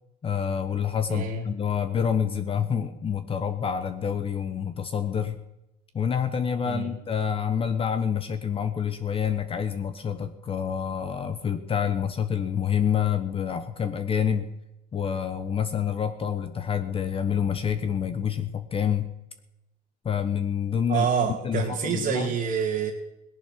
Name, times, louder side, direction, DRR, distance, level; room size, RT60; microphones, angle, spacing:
voice 1, 0.2-5.4 5.9-14.5 14.9-19.1 20.0-21.1 21.4-22.3, left 8 dB, 30° left, 10 dB, 1.1 m, -27 dB
voice 2, 1.1-1.5 6.6-6.9 20.9-22.9, right 7 dB, 40° right, -1 dB, 2.1 m, -27 dB
18.0 x 10.5 x 6.0 m, 0.91 s
supercardioid pair, 110°, 20 cm